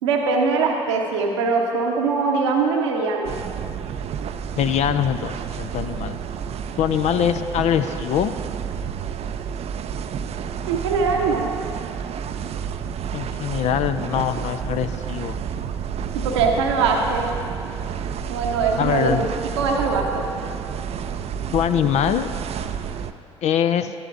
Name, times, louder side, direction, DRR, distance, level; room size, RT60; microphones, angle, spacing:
voice 1, 0.0-3.3 10.6-11.5 16.1-17.3 18.3-19.3 19.6-20.2, right 4 dB, 80° right, 1 dB, 0.9 m, -22 dB
sound 1, 3.2-23.1, right 7 dB, 45° right, 0.4 m, -30 dB
voice 2, 4.6-6.2 6.8-8.3 13.1-15.4 18.8-19.3 21.5-22.3 23.4-23.9, left 9 dB, 50° left, 11 dB, 0.4 m, -23 dB
13.5 x 12.0 x 2.5 m, 2.5 s
figure-of-eight pair, 45°, 15 cm